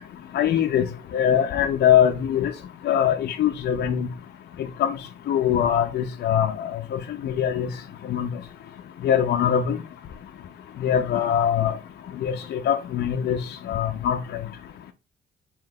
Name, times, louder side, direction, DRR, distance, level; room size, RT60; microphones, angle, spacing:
voice 1, 0.3-0.9 1.1-2.5 2.9-4.1 4.8-4.9 5.3-6.5 6.9-7.7 8.1-8.3 9.0-9.8 10.8-11.7 12.2-13.4 13.7-14.2, left 9 dB, 55° left, 0.4 m, -22 dB
5.0 x 2.8 x 2.2 m
cardioid pair, 90°, 20 cm